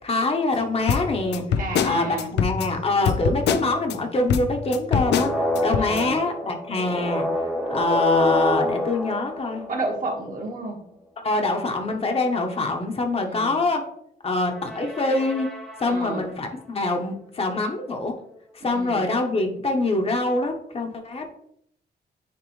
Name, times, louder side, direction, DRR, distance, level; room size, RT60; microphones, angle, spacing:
voice 1, 0.0-7.3 7.7-9.6 11.2-13.8 14.2-15.5 15.8-18.1 18.5-21.3, left 2 dB, 35° left, 3 dB, 1.0 m, -25 dB
sound 1, 0.9-4.0 4.3-6.0, left 7 dB, 80° left, 0.4 m, -24 dB
voice 2, 1.6-2.3 5.8-6.2 9.7-10.8 13.2-13.6 15.8-16.2 18.6-19.0, right 2 dB, 50° right, 0 dB, 1.6 m, -31 dB
sound 2, 4.9-10.2 14.5-16.2, left 1 dB, ahead, 0.9 m, -27 dB
9.6 x 3.4 x 3.1 m, 0.69 s
wide cardioid pair, 145°, 18 cm